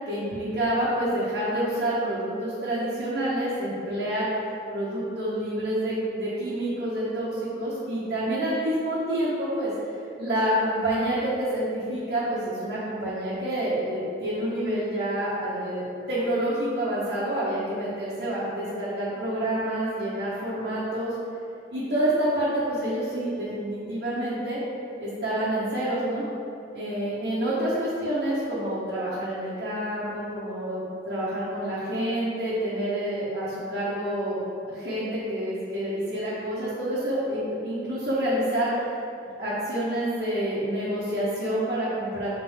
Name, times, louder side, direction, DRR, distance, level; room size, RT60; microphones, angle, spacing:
voice 1, 0.0-4.3 4.7-9.7 10.2-21.1 21.7-24.6 25.0-26.2 26.7-38.8 39.4-42.3, right 1 dB, 60° right, -11 dB, 1.3 m, -28 dB
7.3 x 4.2 x 3.6 m, 2.6 s
head